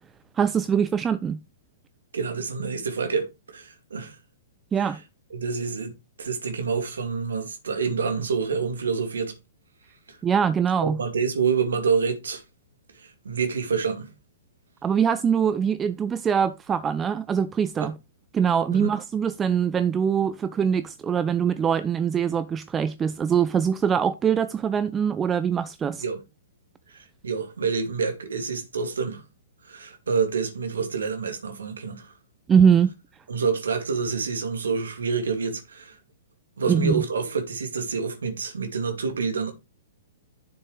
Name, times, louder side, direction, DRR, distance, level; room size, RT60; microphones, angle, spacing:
voice 1, 0.4-1.4 4.7-5.0 10.2-11.0 14.8-18.0 18.3-26.0 32.5-32.9 36.7-37.0, right 7 dB, 15° right, 0.4 m, -23 dB
voice 2, 2.1-4.2 5.3-5.9 6.2-9.3 10.8-12.4 13.0-14.1 18.7-18.9 26.0-26.2 27.2-29.2 29.7-32.1 33.3-35.9 36.6-39.5, right 5 dB, 65° right, 2.3 m, -27 dB
10.5 x 7.0 x 3.3 m
figure-of-eight pair, 110°, 0 cm